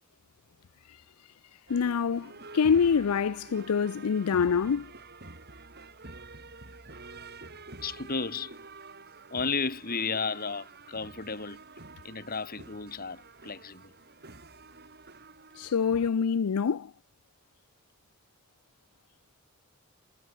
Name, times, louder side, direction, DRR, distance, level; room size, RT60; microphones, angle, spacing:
voice 1, 1.7-4.9 15.6-16.9, left 6 dB, 85° left, 0.5 m, -26 dB
sound 1, 1.7-16.1, right 3 dB, 50° right, 5.6 m, -48 dB
voice 2, 7.8-8.6 9.3-11.6 12.0-13.9, left 4 dB, 40° left, 3.3 m, -33 dB
head